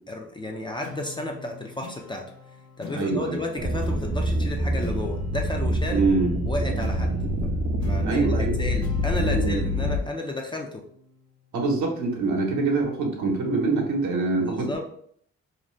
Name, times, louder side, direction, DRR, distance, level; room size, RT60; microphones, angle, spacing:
voice 1, 0.1-2.3 2.8-6.0 6.5-7.2 7.8-10.8 14.4-14.9, left 2 dB, 15° left, 2 dB, 0.3 m, -32 dB
sound 1, 0.8-11.6, left 4 dB, 70° left, 0.6 m, -43 dB
voice 2, 2.9-3.4 5.9-6.3 8.0-8.6 9.2-9.6 11.5-14.7, right 3 dB, 70° right, 1 dB, 0.8 m, -25 dB
sound 2, 3.6-10.0, equal, 40° right, 0.5 m, -26 dB
2.6 x 2.1 x 3.1 m, 0.65 s
cardioid pair, 90°, 30 cm